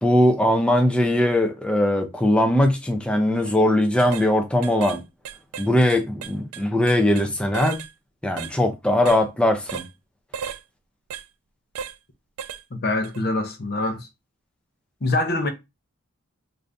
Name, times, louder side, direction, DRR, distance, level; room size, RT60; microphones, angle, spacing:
voice 1, 0.0-5.0 5.6-7.8 8.2-9.8, left 1 dB, 5° left, 0.4 m, -20 dB
sound 1, 3.3-3.5 4.0-4.3 4.6-5.0 5.2-7.3 7.5-7.9 8.4-8.5 9.1-9.2 9.7-9.9 10.3-10.6 11.1-11.2 11.8-12.0 12.4-12.6 13.0-13.2, right 7 dB, 85° right, 0.3 m, -34 dB
voice 2, 12.7-14.1 15.0-15.5, left 2 dB, 45° left, 0.6 m, -24 dB
2.5 x 2.5 x 3.3 m
head